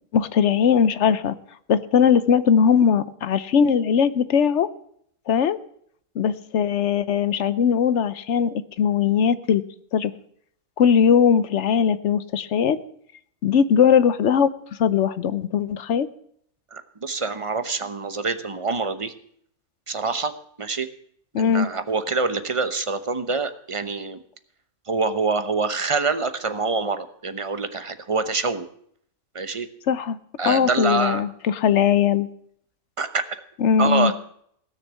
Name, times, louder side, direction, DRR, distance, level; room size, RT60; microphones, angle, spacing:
voice 1, 0.1-1.3 1.7-4.7 5.3-5.6 6.2-9.6 9.9-10.1 10.8-12.8 13.4-14.5 14.8-16.1 21.3-21.7 29.9-30.2 30.5-32.3 33.6-34.1, left 7 dB, 65° left, 14 dB, 1.0 m, -19 dB
voice 2, 16.7-19.1 19.9-20.3 20.6-20.9 21.4-24.2 24.9-28.7 29.3-29.7 30.4-31.2 33.0-33.2 33.8-34.2, right 4 dB, 25° right, 10 dB, 0.9 m, -25 dB
17.0 x 6.6 x 8.3 m, 0.66 s
omnidirectional pair, 1.4 m